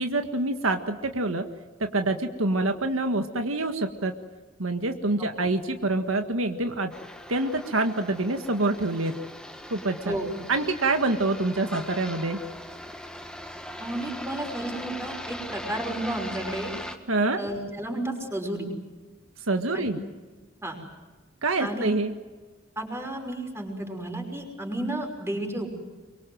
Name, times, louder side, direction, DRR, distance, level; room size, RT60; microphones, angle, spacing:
voice 1, 0.0-1.4 1.8-4.1 4.6-6.9 7.3-9.2 9.7-10.2 10.5-12.4 17.1-17.4 19.5-20.0 21.4-22.1, right 2 dB, 85° right, 6 dB, 1.7 m, -26 dB
sound 1, 6.9-17.0, equal, 5° left, 1.8 m, -40 dB
voice 2, 13.8-16.7 17.4-18.7 19.7-19.9 20.6-20.8 21.6-21.9 22.8-25.7, right 1 dB, 15° right, 2 dB, 5.6 m, -32 dB
24.5 x 23.5 x 7.9 m, 1.3 s
head